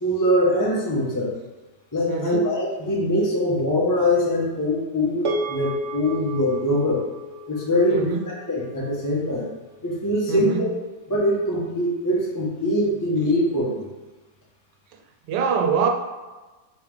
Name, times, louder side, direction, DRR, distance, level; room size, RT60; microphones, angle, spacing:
voice 1, 0.0-1.3 1.9-7.0 7.5-9.5 9.8-10.7 11.1-13.9, left 1 dB, 20° left, -5 dB, 0.6 m, -23 dB
voice 2, 2.1-2.4 7.9-8.2 10.3-10.7 15.3-15.9, right 6 dB, 90° right, 3 dB, 1.3 m, -24 dB
sound 1, 5.2-9.7, equal, 55° right, 0.7 m, -33 dB
3.3 x 3.2 x 4.8 m, 1.2 s
omnidirectional pair, 1.8 m